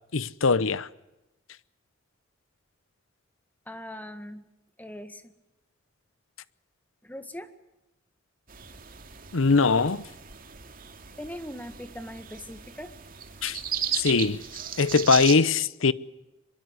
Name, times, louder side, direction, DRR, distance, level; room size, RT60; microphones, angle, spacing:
voice 1, 0.1-0.9 9.3-10.0 13.4-13.6 13.9-14.4 14.8-15.9, left 4 dB, 85° left, 0.9 m, -21 dB
voice 2, 3.7-4.4 4.8-5.3 7.0-7.5 11.2-12.9, equal, 10° left, 1.7 m, -40 dB
sound 1, 8.5-15.3, right 8 dB, 45° right, 2.4 m, -36 dB
24.0 x 22.5 x 8.2 m
head